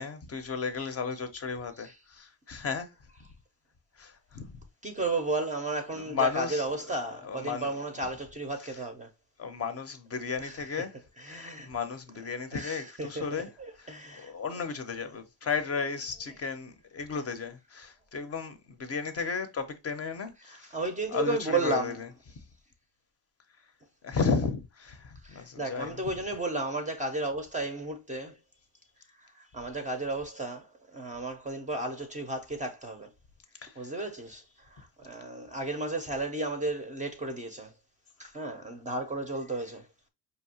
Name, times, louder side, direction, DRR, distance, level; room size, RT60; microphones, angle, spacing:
voice 1, 0.0-2.9 4.0-4.6 5.9-7.7 8.6-8.8 9.4-11.0 11.3-20.7 21.1-22.4 24.0-26.0 33.6-34.0 38.2-38.3, left 5 dB, 35° left, 0.6 m, -34 dB
voice 2, 4.8-9.1 10.4-10.5 11.2-11.7 12.6-12.8 13.2-13.4 13.9-14.3 20.7-22.0 25.2-28.3 29.5-30.7 30.9-33.1 33.8-34.4 35.0-37.7 38.2-39.8, right 2 dB, 20° right, 0.5 m, -33 dB
5.1 x 2.7 x 2.7 m
cardioid pair, 165°, 43 cm